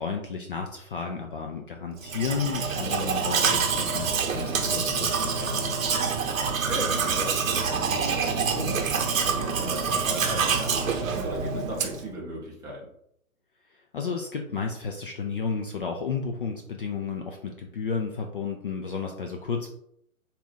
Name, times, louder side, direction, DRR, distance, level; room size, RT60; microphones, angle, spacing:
voice 1, 0.0-5.9 13.7-19.7, left 5 dB, 40° left, 2 dB, 0.4 m, -32 dB
Domestic sounds home sounds, 2.0-12.1, right 5 dB, 65° right, 0.9 m, -26 dB
voice 2, 5.9-8.8 9.1-12.9, right 1 dB, 10° right, -6 dB, 0.7 m, -36 dB
4.1 x 2.4 x 3.9 m, 0.72 s
hypercardioid pair, 145°, 43 cm